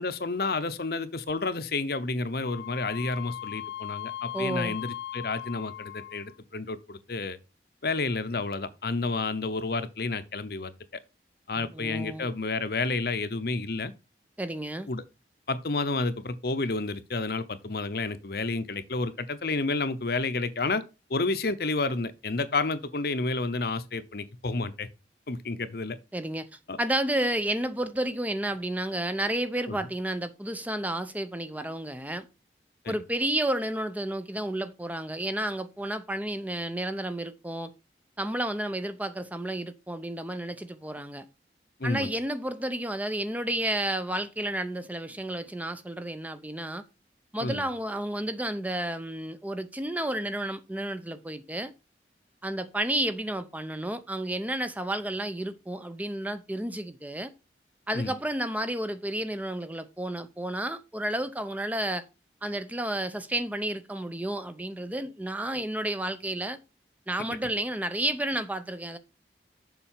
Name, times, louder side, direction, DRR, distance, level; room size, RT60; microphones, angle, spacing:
voice 1, 0.0-7.4 7.8-10.7 11.5-13.9 14.9-15.0 15.5-20.8 21.1-24.9 25.3-26.0 26.7-26.8 29.7-29.8 32.8-32.9 41.8-42.1 47.4-47.6 57.9-58.1, left 3 dB, 60° left, 0.8 m, -30 dB
Wind instrument woodwind instrument, 2.4-6.4, left 12 dB, 85° left, 0.5 m, -38 dB
voice 2, 4.3-4.8 11.6-12.3 14.4-14.9 26.1-26.5 26.8-32.3 32.9-37.7 38.2-41.3 41.8-46.8 47.3-51.7 52.4-57.3 57.9-62.0 62.4-66.6 67.1-69.0, right 1 dB, 10° right, 0.6 m, -31 dB
7.2 x 5.5 x 5.7 m
head